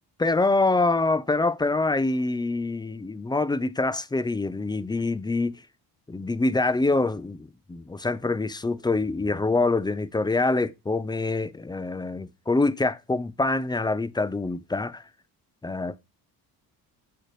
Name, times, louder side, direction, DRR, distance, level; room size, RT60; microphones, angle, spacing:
voice 1, 0.2-5.6 6.1-15.0 15.6-16.0, left 3 dB, 10° left, 0.4 m, -25 dB
6.3 x 6.1 x 3.1 m
hypercardioid pair, 55°, 49 cm